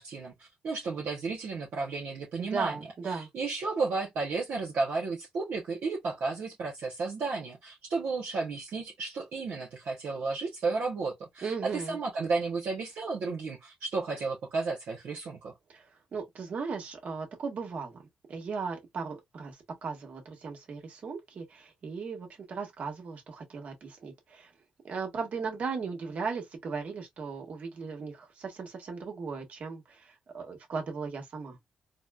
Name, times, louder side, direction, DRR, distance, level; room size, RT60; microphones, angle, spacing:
voice 1, 0.0-2.8 3.0-15.5, right 4 dB, 75° right, 0.9 m, -33 dB
voice 2, 2.4-3.3 11.4-12.0 15.7-15.8 16.1-18.0 18.3-24.5 24.8-31.6, right 5 dB, 60° right, 1.3 m, -37 dB
4.0 x 2.0 x 2.3 m
cardioid pair, 75°, 3 cm